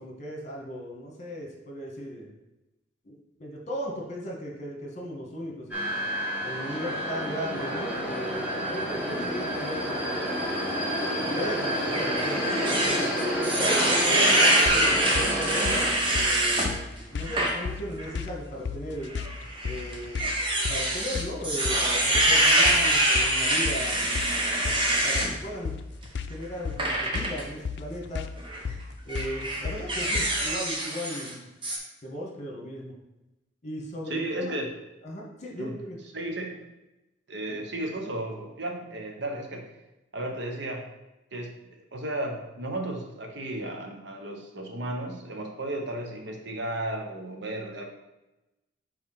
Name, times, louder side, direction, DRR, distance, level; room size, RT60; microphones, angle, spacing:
voice 1, 0.0-2.3 3.0-3.1 3.4-5.9 6.4-10.4 11.2-13.1 13.6-15.5 16.1-19.1 19.6-20.3 20.7-24.1 25.0-25.8 26.3-28.3 29.0-31.5 32.0-33.0 33.6-34.6 35.0-36.0, equal, 40° left, -1 dB, 1.6 m, -37 dB
sound 1, 5.7-15.9, equal, 10° right, 2.0 m, -29 dB
sound 2, 11.9-16.7 17.2-17.5 18.0-18.1 19.1-25.3 26.8-27.4 28.4-28.6 29.1-31.3 31.6-31.8, right 1 dB, 25° right, 1.1 m, -25 dB
sound 3, 14.7-30.5, left 5 dB, 65° left, 0.4 m, -35 dB
voice 2, 34.1-34.7 35.6-35.8 36.1-36.7 37.3-39.7 40.1-40.9 41.3-47.8, right 1 dB, 65° right, 2 dB, 1.0 m, -34 dB
4.7 x 4.6 x 5.8 m, 0.98 s
head